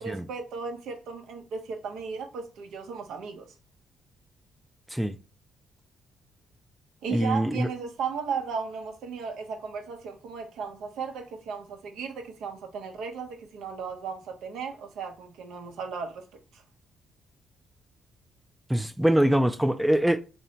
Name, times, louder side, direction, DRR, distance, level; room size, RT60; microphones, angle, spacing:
voice 1, 0.0-3.5 7.0-16.2 16.5-16.6, right 5 dB, 80° right, 0.8 m, -35 dB
voice 2, 7.1-7.7 18.7-20.2, right 1 dB, 5° right, 0.4 m, -23 dB
2.8 x 2.7 x 4.3 m
cardioid pair, 90°, 0 cm